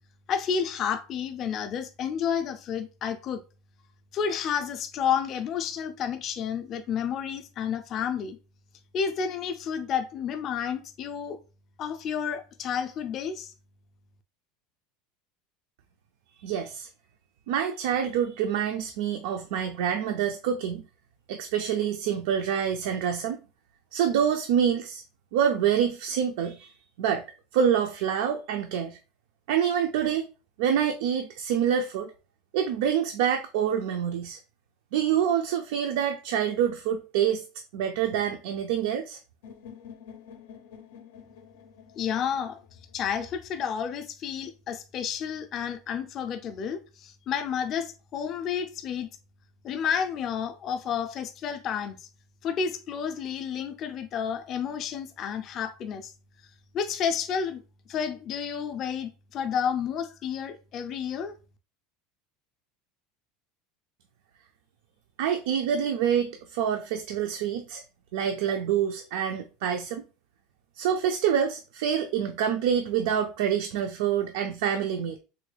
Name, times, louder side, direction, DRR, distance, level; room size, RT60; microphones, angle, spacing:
voice 1, 0.3-3.4 4.1-8.4 8.9-11.4 11.8-13.5 42.0-42.6 42.9-49.1 49.6-52.1 52.4-56.1 56.7-57.6 57.9-61.3, left 7 dB, 30° left, 0.4 m, -30 dB
voice 2, 16.4-16.9 17.5-20.8 21.3-23.4 23.9-25.0 25.3-26.7 27.0-27.2 27.5-29.0 29.5-30.3 30.6-32.1 32.5-34.4 34.9-37.4 37.7-39.2 65.2-67.8 68.1-70.0 70.8-75.2, right 8 dB, 65° right, 0.3 m, -26 dB
sound 1, 39.4-43.4, left 7 dB, 85° left, 0.5 m, -49 dB
3.6 x 2.3 x 3.1 m
cardioid pair, 175°, 0 cm